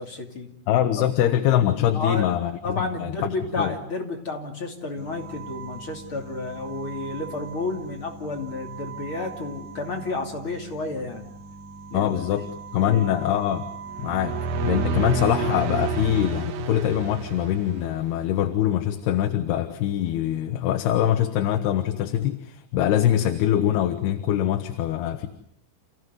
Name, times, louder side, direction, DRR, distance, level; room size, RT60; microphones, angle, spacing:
voice 1, 0.0-0.5 0.9-1.0 1.9-11.3 11.9-12.5 12.8-13.1, left 3 dB, 35° left, 2 dB, 3.2 m, -31 dB
voice 2, 0.7-3.1 3.6-3.7 11.9-12.4 12.7-13.7 14.0-14.4 14.6-25.3, left 11 dB, 75° left, 7 dB, 3.2 m, -23 dB
sound 1, 4.9-16.5, right 4 dB, 55° right, 7.4 m, -41 dB
sound 2, 13.9-18.3, right 4 dB, 70° right, 3.1 m, -29 dB
30.0 x 16.5 x 9.5 m, 0.74 s
omnidirectional pair, 4.7 m